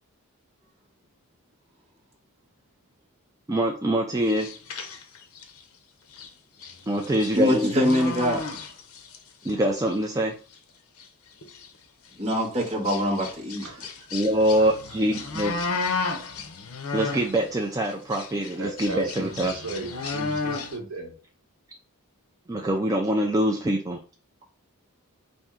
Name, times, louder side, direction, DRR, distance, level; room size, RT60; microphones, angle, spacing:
voice 1, 3.5-4.5 6.9-7.7 9.4-10.3 14.1-15.6 16.9-19.5 22.5-24.0, right 1 dB, 15° right, 2 dB, 0.3 m, -24 dB
sound 1, 4.2-5.6 6.1-6.3 6.6-9.2 9.4-9.9 10.5-10.6 11.0-11.1 11.4-11.7 12.3-17.5 17.8-20.8, left 4 dB, 70° left, 0.7 m, -33 dB
voice 2, 7.3-8.4 12.2-13.7, equal, 30° right, -3 dB, 1.2 m, -24 dB
voice 3, 13.6-14.2 14.6-14.7 15.2-15.3 18.6-21.2, right 3 dB, 65° right, 2 dB, 1.1 m, -36 dB
4.3 x 2.6 x 3.6 m, 0.39 s
head